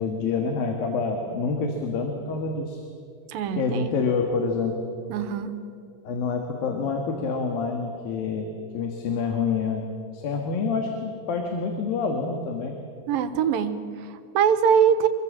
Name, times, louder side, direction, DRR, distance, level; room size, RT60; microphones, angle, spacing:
voice 1, 0.0-2.8 3.6-4.8 6.1-8.5 8.7-9.9 10.1-12.8, left 4 dB, 90° left, 3 dB, 3.5 m, -27 dB
voice 2, 3.3-3.9 5.1-5.5 13.1-15.1, right 7 dB, 85° right, 10 dB, 2.9 m, -23 dB
26.0 x 22.5 x 7.5 m, 2.3 s
omnidirectional pair, 4.0 m